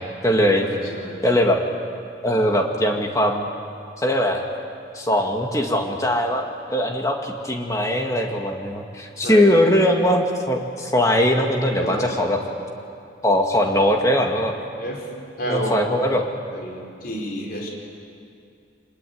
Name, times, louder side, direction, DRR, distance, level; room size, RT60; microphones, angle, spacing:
voice 1, 0.0-0.7 1.2-1.6 2.2-3.5 4.0-4.5 4.9-12.4 13.2-14.5 15.5-16.2, equal, 15° left, 2 dB, 2.2 m, -20 dB
voice 2, 0.5-1.2 9.2-9.6 11.8-12.3 14.8-15.0 15.4-16.0 16.5-17.7, equal, 50° left, 0 dB, 5.0 m, -30 dB
24.5 x 20.5 x 9.6 m, 2.5 s
head